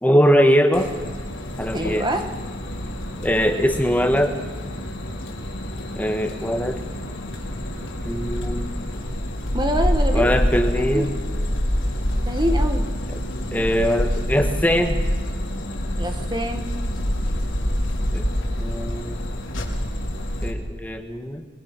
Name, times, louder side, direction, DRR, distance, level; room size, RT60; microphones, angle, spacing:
voice 1, 0.0-0.9 1.6-2.1 3.2-4.3 5.9-6.8 8.0-8.7 10.1-11.1 13.5-15.0 18.1-18.3 18.6-19.2 20.4-21.5, equal, 10° left, 5 dB, 1.5 m, -21 dB
sound 1, 0.7-20.5, equal, 75° left, 4.0 m, -26 dB
voice 2, 1.7-2.3 9.5-10.3 10.8-11.1 12.3-12.9 16.0-16.7, equal, 20° right, 5 dB, 1.4 m, -25 dB
28.5 x 21.5 x 6.1 m, 1.5 s
head